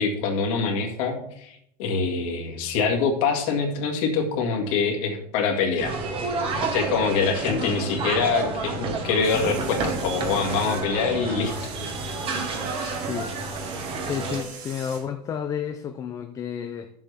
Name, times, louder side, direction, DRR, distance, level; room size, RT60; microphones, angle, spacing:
voice 1, 0.0-5.9 6.6-11.5 12.8-13.1, left 5 dB, 60° left, 3 dB, 2.0 m, -25 dB
sound 1, 5.8-14.4, right 3 dB, 25° right, 1.3 m, -30 dB
voice 2, 7.5-7.8 12.9-13.7 14.0-16.9, left 8 dB, 15° left, 7 dB, 0.4 m, -32 dB
sound 2, 9.2-10.9 11.2-15.1, right 5 dB, 70° right, 3.7 m, -42 dB
11.5 x 7.3 x 3.4 m, 0.73 s
supercardioid pair, 165°, 20 cm